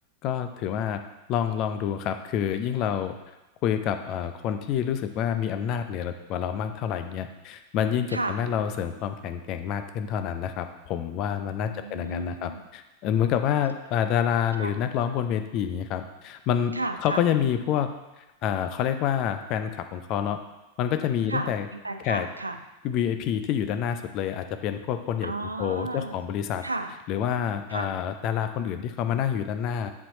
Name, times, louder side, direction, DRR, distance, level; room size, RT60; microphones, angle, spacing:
voice 1, 0.2-1.0 1.3-3.1 3.6-16.7 17.0-17.9 18.4-20.4 20.8-21.6 22.0-22.3 22.8-25.3 25.6-26.6 27.1-29.9, left 9 dB, 40° left, 8 dB, 0.5 m, -27 dB
voice 2, 11.6-12.7 14.6-14.8 16.7-17.2 21.3-22.6 25.2-26.2 26.6-26.9 27.7-28.0, right 2 dB, 85° right, 7 dB, 0.5 m, -33 dB
7.4 x 4.6 x 4.1 m, 1.0 s
figure-of-eight pair, 90°, 0 cm